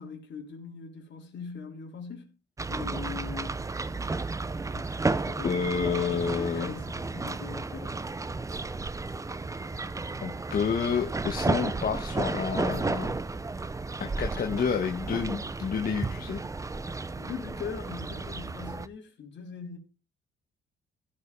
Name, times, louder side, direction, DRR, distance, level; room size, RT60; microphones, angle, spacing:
voice 1, 0.0-2.3 2.7-3.6 4.7-7.9 17.2-19.8, left 6 dB, 65° left, 3.7 m, -41 dB
sound 1, 2.6-18.9, right 3 dB, 15° right, 0.6 m, -33 dB
voice 2, 5.4-6.7 10.2-13.2 14.0-16.4, left 6 dB, 45° left, 1.4 m, -29 dB
15.5 x 5.5 x 4.7 m
cardioid pair, 90°, 20 cm